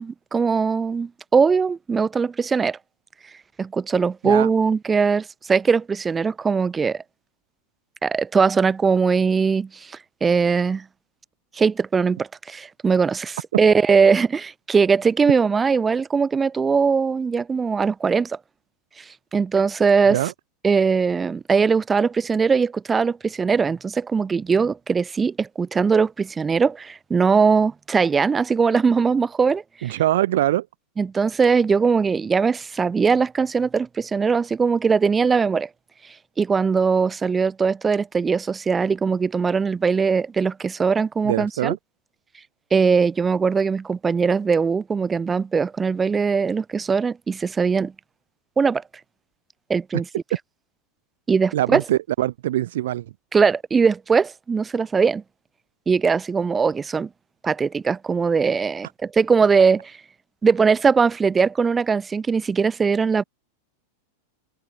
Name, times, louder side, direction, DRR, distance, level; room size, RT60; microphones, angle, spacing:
voice 1, 0.0-2.8 3.6-7.0 8.0-10.8 11.5-18.4 19.0-19.1 19.3-20.2 20.6-30.0 31.0-35.7 36.4-41.8 42.7-47.9 48.6-48.8 49.7-50.1 51.3-51.8 53.3-55.2 55.9-57.1 57.4-59.9 60.4-63.2, right 5 dB, 15° right, 2.8 m, -20 dB
voice 2, 29.8-30.7 41.2-41.8 51.5-53.1, right 14 dB, 55° right, 1.8 m, -23 dB
figure-of-eight pair, 90°, 0 cm